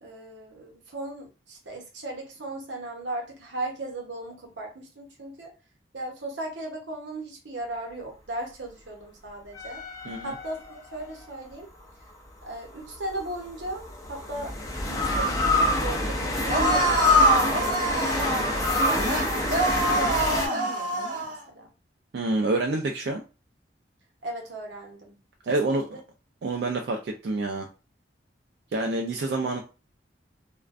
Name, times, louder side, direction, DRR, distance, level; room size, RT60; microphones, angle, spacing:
voice 1, 0.0-5.5 5.9-9.8 10.2-11.7 12.4-18.4 18.8-21.7 24.2-25.2 25.4-26.0, right 2 dB, 85° right, 1 dB, 0.8 m, -37 dB
sound 1, 9.5-11.1 12.9-20.5, left 1 dB, 20° left, 0.4 m, -25 dB
sound 2, 16.5-21.4, right 2 dB, 45° right, 0.7 m, -27 dB
voice 2, 22.1-23.2 25.5-26.0 26.4-27.7 28.7-29.6, right 2 dB, 60° right, 2 dB, 0.3 m, -27 dB
2.4 x 2.2 x 2.4 m, 0.31 s
head